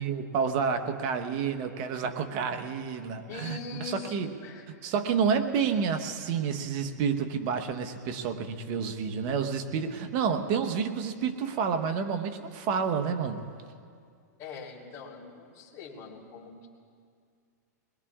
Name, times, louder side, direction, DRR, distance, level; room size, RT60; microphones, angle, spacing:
voice 1, 0.0-4.3 4.8-13.4, right 6 dB, 45° right, 7 dB, 1.2 m, -29 dB
voice 2, 3.3-4.1 4.4-4.9 14.4-16.7, left 5 dB, 35° left, -3 dB, 3.2 m, -42 dB
22.0 x 21.5 x 2.5 m, 2.3 s
hypercardioid pair, 125°, 9 cm